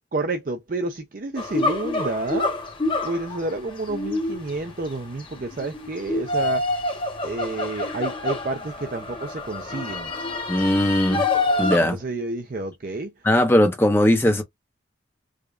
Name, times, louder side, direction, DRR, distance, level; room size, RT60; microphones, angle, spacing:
voice 1, 0.1-2.8 3.0-6.8 7.2-10.1 11.8-13.3, right 2 dB, 45° right, 0.5 m, -30 dB
sound 1, 1.4-11.8, left 2 dB, 30° left, 1.1 m, -27 dB
voice 2, 10.5-11.2 11.6-12.0 13.2-14.4, left 1 dB, 10° left, 0.7 m, -19 dB
4.9 x 2.3 x 2.4 m
head